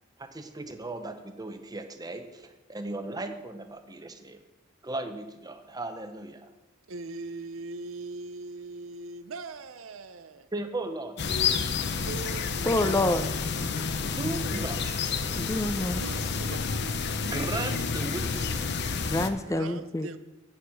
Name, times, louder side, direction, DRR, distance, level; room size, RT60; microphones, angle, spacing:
voice 1, 0.2-4.4 4.8-6.5 10.5-11.2 14.0-15.0 17.2-18.5, right 2 dB, 20° right, 0.9 m, -36 dB
voice 2, 6.9-10.5 12.1-13.0 16.0-17.0 19.4-20.2, right 3 dB, 85° right, 0.7 m, -40 dB
sound 1, 11.2-19.3, left 5 dB, 55° left, 0.7 m, -29 dB
voice 3, 12.6-13.3 15.3-16.0 19.1-20.1, left 2 dB, 15° left, 0.6 m, -27 dB
8.8 x 7.2 x 6.3 m
head